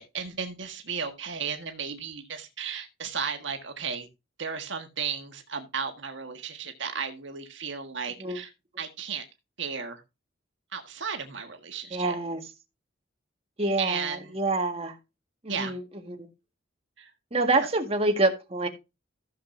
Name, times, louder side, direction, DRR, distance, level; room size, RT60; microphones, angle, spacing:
voice 1, 0.0-4.1 4.4-8.5 8.8-9.2 9.6-10.0 10.7-12.2 13.8-14.4 15.5-15.8 17.0-17.1, right 6 dB, 70° right, 1.6 m, -34 dB
voice 2, 11.9-12.4 13.6-15.0 15.4-15.8 16.1-16.3 17.3-18.7, right 2 dB, 30° right, 1.8 m, -26 dB
15.0 x 7.1 x 2.7 m
head